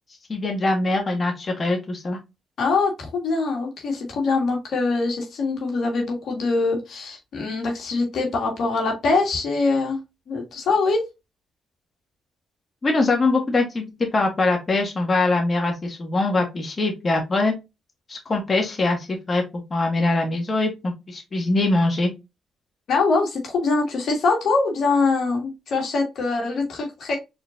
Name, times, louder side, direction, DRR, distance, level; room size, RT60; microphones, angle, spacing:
voice 1, 0.3-2.2 12.8-13.8 14.1-17.5 18.1-19.4 19.7-22.1, left 2 dB, 40° left, 1 dB, 1.7 m, -22 dB
voice 2, 2.6-10.0 10.3-11.0 22.9-27.2, left 3 dB, 70° left, 1 dB, 1.7 m, -23 dB
4.3 x 3.8 x 2.5 m, 0.23 s
supercardioid pair, 55°, 0 cm